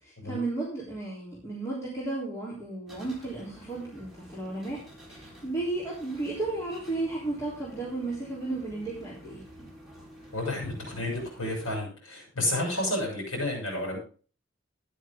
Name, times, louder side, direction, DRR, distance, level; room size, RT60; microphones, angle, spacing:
voice 1, 0.0-4.8 5.1-9.4, right 2 dB, 15° left, -6 dB, 3.6 m, -34 dB
sound 1, 2.9-11.8, equal, ahead, 4.1 m, -49 dB
voice 2, 10.3-14.0, left 1 dB, 80° left, 0 dB, 6.6 m, -31 dB
13.0 x 10.0 x 3.7 m, 0.39 s
head